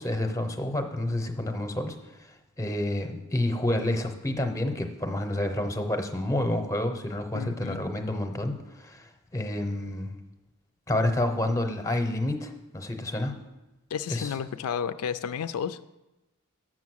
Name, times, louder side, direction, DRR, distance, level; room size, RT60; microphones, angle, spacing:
voice 1, 0.0-1.9 2.6-10.1 10.9-13.4 14.1-14.3, left 1 dB, 15° left, 6 dB, 0.7 m, -29 dB
voice 2, 7.3-7.8 13.9-15.8, left 7 dB, 90° left, 12 dB, 0.3 m, -32 dB
7.1 x 6.2 x 6.3 m, 0.99 s
head